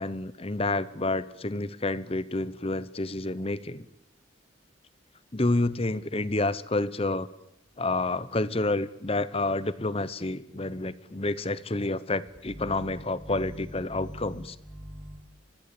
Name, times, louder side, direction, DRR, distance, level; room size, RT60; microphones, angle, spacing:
voice 1, 0.0-3.9 5.3-7.3 7.8-14.6, left 2 dB, 30° left, 16 dB, 1.0 m, -29 dB
voice 2, 12.5-13.6 13.9-15.2, equal, ahead, -3 dB, 7.3 m, -43 dB
25.5 x 21.5 x 8.5 m, 0.80 s
head